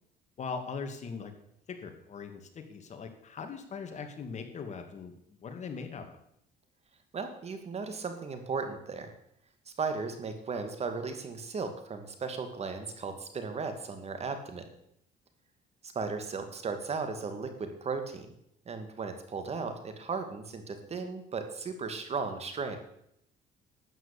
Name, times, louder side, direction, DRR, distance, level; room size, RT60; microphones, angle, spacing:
voice 1, 0.4-1.3 1.7-5.1 5.4-6.2, left 5 dB, 45° left, 6 dB, 2.4 m, -40 dB
voice 2, 7.1-9.1 9.7-14.7 15.9-18.3 18.7-22.8, right 4 dB, 40° right, 7 dB, 2.5 m, -36 dB
12.5 x 9.1 x 8.5 m, 0.74 s
cardioid pair, 110°, 17 cm